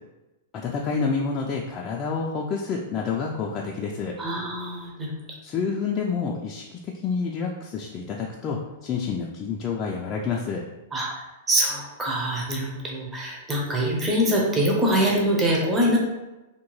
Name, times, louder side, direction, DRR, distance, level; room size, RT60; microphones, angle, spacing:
voice 1, 0.5-4.2 5.4-10.6, left 5 dB, 30° left, -2 dB, 0.3 m, -28 dB
voice 2, 4.2-5.1 10.9-11.1 11.5-16.0, equal, 15° right, -3 dB, 0.7 m, -24 dB
2.7 x 2.2 x 3.0 m, 1.0 s
hypercardioid pair, 120°, 0 cm